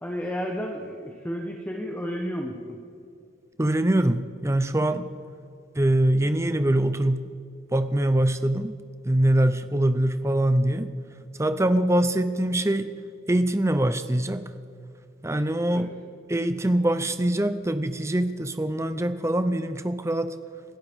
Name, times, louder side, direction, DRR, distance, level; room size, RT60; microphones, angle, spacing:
voice 1, 0.0-2.8 15.7-15.8, equal, 10° left, 1 dB, 0.9 m, -32 dB
voice 2, 3.6-5.1 5.7-7.3 7.7-8.8 9.0-10.9 11.4-12.9 13.3-14.5 15.2-15.9 16.3-20.3, right 1 dB, 15° right, 11 dB, 0.6 m, -23 dB
30.0 x 12.0 x 3.6 m, 2.4 s
head